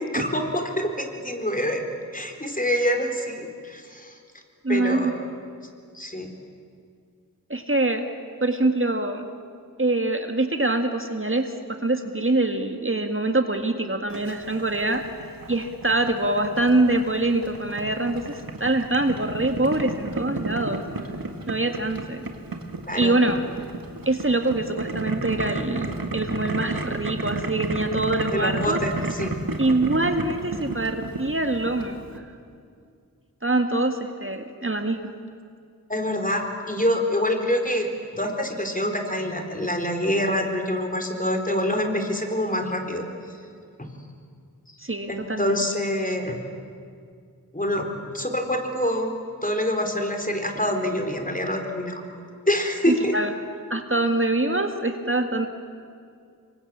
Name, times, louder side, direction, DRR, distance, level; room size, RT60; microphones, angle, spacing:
voice 1, 0.1-1.8 2.1-4.1 4.7-5.1 5.9-6.3 22.9-23.2 28.3-29.4 35.9-37.9 38.1-43.1 43.8-43.9 45.1-46.4 47.5-49.1 49.4-52.0 52.5-53.1, left 1 dB, 25° left, 4 dB, 4.0 m, -26 dB
voice 2, 4.6-5.1 7.5-8.0 8.4-9.2 9.8-11.5 11.8-20.8 21.5-22.3 22.9-23.4 24.1-28.8 29.6-32.0 33.4-35.1 44.8-45.6 52.9-53.3 53.7-55.5, right 2 dB, 35° right, 6 dB, 1.9 m, -24 dB
Boiling, 14.1-32.2, right 2 dB, 85° right, 1.9 m, -33 dB
26.5 x 23.0 x 8.8 m, 2.3 s
wide cardioid pair, 45°, 34 cm